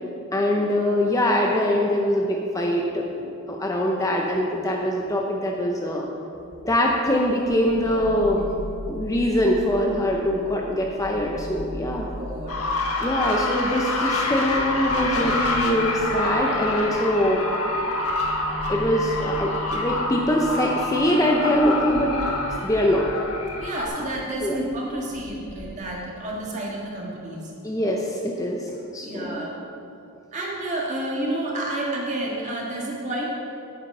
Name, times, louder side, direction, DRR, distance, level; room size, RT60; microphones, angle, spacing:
voice 1, 0.3-6.1 6.6-8.5 8.9-12.1 13.0-17.4 18.7-22.1 22.6-23.1 24.4-24.6 27.6-29.4, equal, 15° left, -1 dB, 0.6 m, -23 dB
sound 1, 6.3-25.7, equal, 30° left, 1.1 m, -39 dB
voice 2, 12.2-12.6 22.5-22.7 23.6-27.5 29.0-29.6 30.3-33.2, right 1 dB, 30° right, -3 dB, 1.7 m, -30 dB
sound 2, 12.5-23.9, left 2 dB, 75° left, 1.3 m, -27 dB
8.7 x 8.1 x 5.4 m, 2.7 s
head